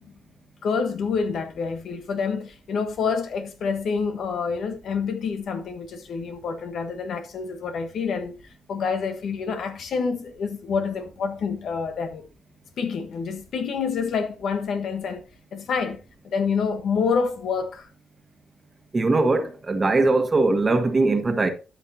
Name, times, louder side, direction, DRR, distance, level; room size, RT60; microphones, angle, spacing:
voice 1, 0.6-8.4 8.7-12.2 12.8-15.2 15.5-16.0 16.2-17.9, left 5 dB, 65° left, 1.4 m, -27 dB
voice 2, 18.9-21.5, right 3 dB, 25° right, 1.4 m, -21 dB
13.0 x 5.6 x 2.9 m
cardioid pair, 90°, 0 cm